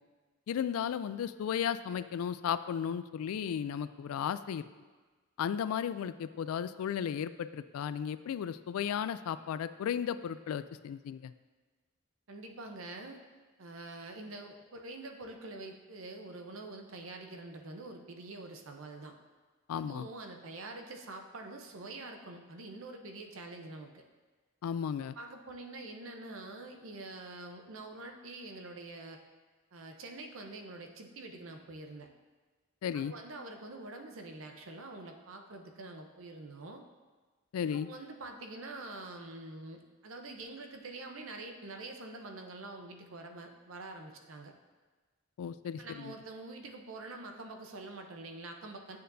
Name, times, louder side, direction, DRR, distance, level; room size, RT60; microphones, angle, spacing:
voice 1, 0.5-4.7 5.4-11.3 19.7-20.1 24.6-25.2 32.8-33.1 37.5-37.9 45.4-46.1, left 8 dB, 85° left, 14 dB, 0.3 m, -35 dB
voice 2, 12.3-13.2 13.6-19.1 19.7-24.0 25.2-29.2 29.7-32.1 32.9-36.8 37.8-44.5 45.8-49.0, right 2 dB, 70° right, 4 dB, 0.7 m, -46 dB
8.4 x 6.7 x 2.6 m, 1.4 s
head